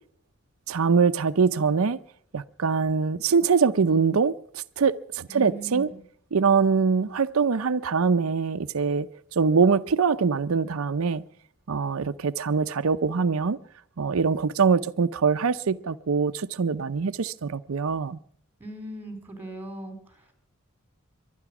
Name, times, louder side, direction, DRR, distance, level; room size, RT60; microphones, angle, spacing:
voice 1, 0.7-2.0 2.3-5.9 6.3-11.2 11.7-13.6 14.0-18.2, right 5 dB, 85° right, 0.6 m, -23 dB
voice 2, 5.3-6.0 18.6-20.3, right 1 dB, 10° right, 4.2 m, -39 dB
24.0 x 10.0 x 5.9 m
head